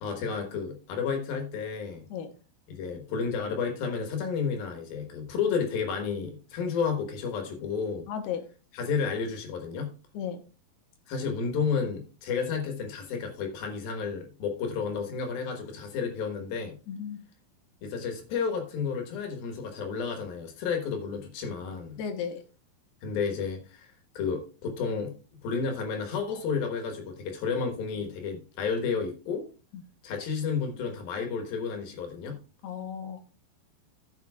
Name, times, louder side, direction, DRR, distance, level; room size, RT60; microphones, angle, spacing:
voice 1, 0.0-2.1 2.7-8.1 8.7-9.9 11.1-16.8 17.8-22.0 23.0-23.9 24.2-25.1 25.4-29.4 30.0-32.4, left 5 dB, 70° left, 3.2 m, -31 dB
voice 2, 8.1-8.4 10.1-10.4 16.9-17.2 22.0-22.4 29.7-29.8 32.6-33.2, left 7 dB, 90° left, 3.1 m, -34 dB
14.0 x 7.4 x 2.3 m
omnidirectional pair, 4.6 m